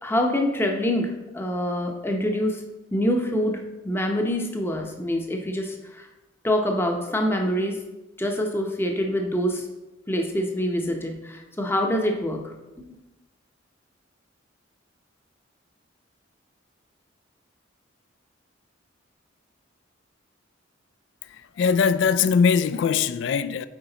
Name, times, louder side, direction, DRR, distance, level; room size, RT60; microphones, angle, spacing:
voice 1, 0.0-2.6 2.9-6.1 6.4-7.8 8.2-9.7 10.1-12.5 12.9-13.0, equal, 10° left, 0.7 m, -25 dB
voice 2, 21.6-23.7, left 6 dB, 65° left, 0.3 m, -21 dB
8.2 x 4.7 x 3.9 m
head